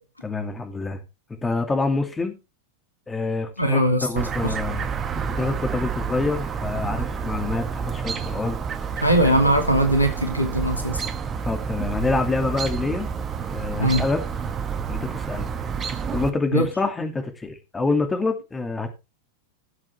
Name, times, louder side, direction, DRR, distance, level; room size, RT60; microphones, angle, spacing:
voice 1, 0.2-1.0 1.4-2.3 3.1-4.9 5.2-8.6 9.4-9.5 11.4-13.1 13.5-14.2 14.9-15.5 16.1-18.9, left 3 dB, 15° left, 6 dB, 2.3 m, -26 dB
voice 2, 3.6-4.5 9.0-11.0 13.8-14.1 16.5-16.7, right 1 dB, 85° left, 6 dB, 2.3 m, -21 dB
Chirp tweet, 4.2-16.3, right 6 dB, 25° right, 1.3 m, -29 dB
16.5 x 7.6 x 3.4 m, 0.27 s
figure-of-eight pair, 90°, 0 cm